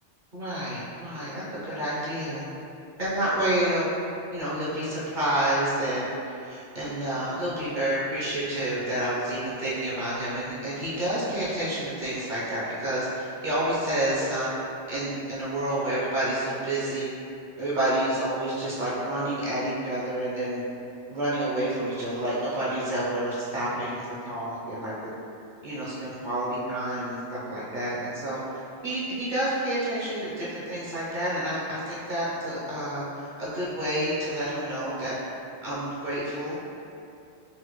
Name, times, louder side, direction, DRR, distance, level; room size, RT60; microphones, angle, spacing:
voice 1, 0.3-2.4 3.0-3.9 4.3-14.5 14.9-17.1 17.6-20.6 21.1-24.9 25.6-28.4 28.8-35.2 35.6-36.6, right 1 dB, 50° right, -9 dB, 0.8 m, -29 dB
4.1 x 2.1 x 3.0 m, 2.6 s
omnidirectional pair, 1.2 m